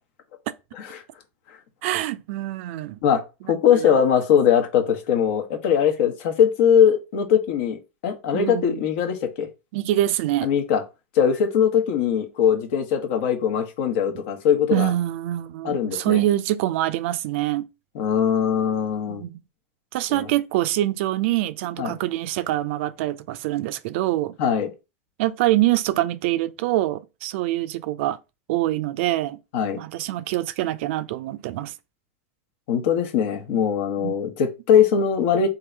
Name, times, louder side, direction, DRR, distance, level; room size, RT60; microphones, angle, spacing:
voice 1, 1.8-3.0 3.7-4.0 8.3-8.9 9.7-10.5 14.7-17.7 19.1-19.4 19.9-24.3 25.2-28.2 28.5-29.4 29.8-31.7 34.0-34.1, right 14 dB, 65° right, 0.4 m, -25 dB
voice 2, 3.5-9.5 10.4-10.8 11.1-14.9 15.6-16.2 17.9-19.2 20.1-20.3 21.8-22.0 24.4-24.7 29.5-29.8 32.7-35.5, left 8 dB, 65° left, 1.0 m, -21 dB
3.7 x 2.7 x 4.5 m
hypercardioid pair, 115°, 7 cm